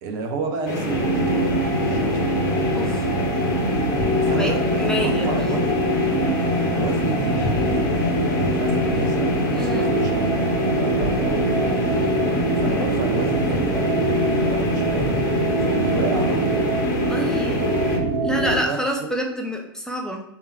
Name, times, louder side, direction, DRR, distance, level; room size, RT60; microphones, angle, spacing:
voice 1, 0.0-1.6 1.8-2.4 4.2-5.9 6.6-10.3 10.8-11.8 12.6-15.2 15.6-16.8 18.4-19.1, right 4 dB, 50° right, 2 dB, 0.9 m, -31 dB
sound 1, 0.7-18.0, left 2 dB, 50° left, 1.0 m, -27 dB
sound 2, 0.9-18.6, right 1 dB, 80° right, 0.6 m, -23 dB
voice 2, 2.7-3.1 4.4-5.3 9.5-9.9 17.1-17.7 18.2-20.2, equal, 5° left, 1 dB, 0.5 m, -27 dB
sound 3, 3.9-15.6, equal, 85° left, 1.0 m, -36 dB
3.6 x 2.9 x 4.5 m, 0.80 s
figure-of-eight pair, 85°, 13 cm